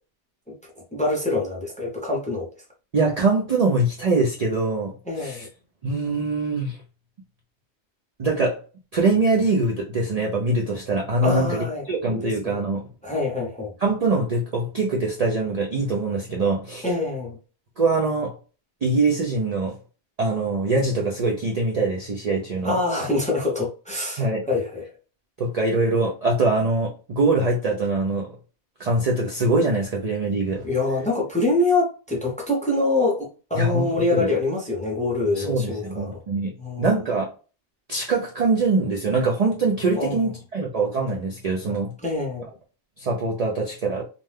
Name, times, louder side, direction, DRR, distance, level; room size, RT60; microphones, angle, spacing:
voice 1, 0.9-2.5 5.1-5.5 11.2-12.6 13.0-13.7 16.8-17.4 22.6-24.8 30.6-36.2 36.6-36.9 39.9-40.2 42.0-42.5, left 2 dB, 10° left, 0.6 m, -25 dB
voice 2, 2.9-5.5 5.8-6.8 8.2-8.6 8.9-12.9 13.8-16.9 17.8-18.3 18.8-19.8 20.2-22.8 24.2-24.5 25.4-28.4 28.8-30.7 33.5-34.3 35.3-36.5 36.8-37.3 37.9-41.9 43.0-44.1, right 3 dB, 50° right, 0.5 m, -23 dB
2.6 x 2.2 x 3.2 m
omnidirectional pair, 1.1 m